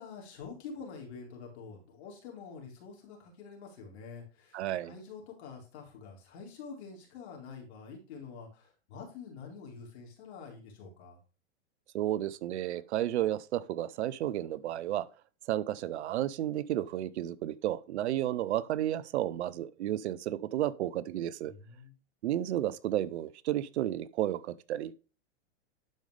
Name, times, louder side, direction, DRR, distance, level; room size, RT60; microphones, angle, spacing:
voice 1, 0.0-11.2 21.4-21.9, left 5 dB, 65° left, 4.2 m, -47 dB
voice 2, 4.5-4.9 11.9-15.1 15.5-21.5 22.2-24.9, right 13 dB, 70° right, 0.8 m, -32 dB
11.5 x 5.4 x 3.4 m
hypercardioid pair, 120°, 35 cm